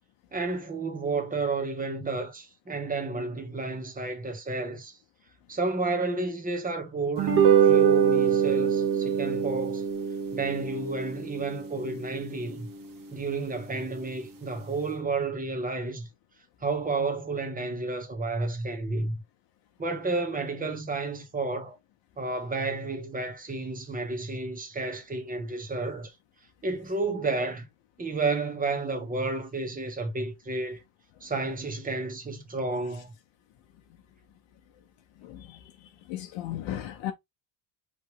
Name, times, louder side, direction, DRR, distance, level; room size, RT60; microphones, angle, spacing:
voice 1, 0.3-5.0 5.5-9.8 10.3-12.7 13.1-16.1 16.6-19.1 19.8-21.8 22.2-26.1 26.6-27.7 28.0-30.8 31.2-33.1, right 3 dB, 20° right, 1.4 m, -31 dB
sound 1, 7.2-13.7, right 8 dB, 45° right, 1.3 m, -25 dB
voice 2, 35.2-37.1, left 12 dB, 75° left, 0.8 m, -36 dB
3.5 x 2.8 x 4.7 m
cardioid pair, 105°, 45 cm